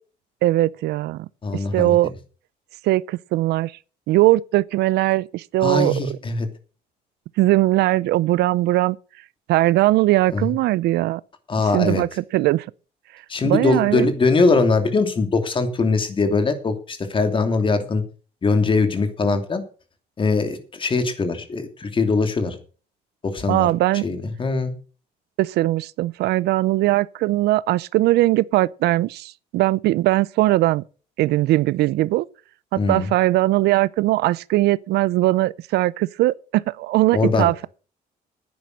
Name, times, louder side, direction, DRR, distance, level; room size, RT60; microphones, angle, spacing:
voice 1, 0.4-1.3 1.7-2.1 2.8-3.7 4.1-5.9 7.4-9.0 9.5-11.2 11.7-12.6 13.4-14.1 23.5-24.1 25.4-30.8 31.2-32.3 32.7-37.7, right 17 dB, 75° right, 0.5 m, -20 dB
voice 2, 1.4-1.9 5.6-6.5 10.3-10.5 11.5-12.0 13.3-18.0 18.4-19.6 20.2-22.6 23.2-23.7 24.0-24.7 32.7-33.1 37.1-37.5, left 3 dB, 30° left, 2.7 m, -21 dB
10.5 x 9.5 x 6.5 m
cardioid pair, 110°, 17 cm